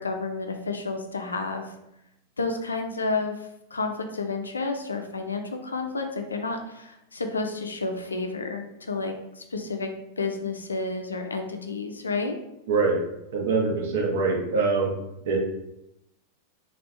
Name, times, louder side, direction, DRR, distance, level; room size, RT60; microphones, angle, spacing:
voice 1, 0.0-1.7 2.4-3.4 3.7-9.9 10.2-12.4, left 3 dB, 75° left, 4 dB, 0.4 m, -30 dB
voice 2, 12.7-13.0 13.3-14.9 15.3-15.4, right 4 dB, 55° right, 0 dB, 0.8 m, -23 dB
3.4 x 2.4 x 3.1 m, 0.85 s
figure-of-eight pair, 90°, 0 cm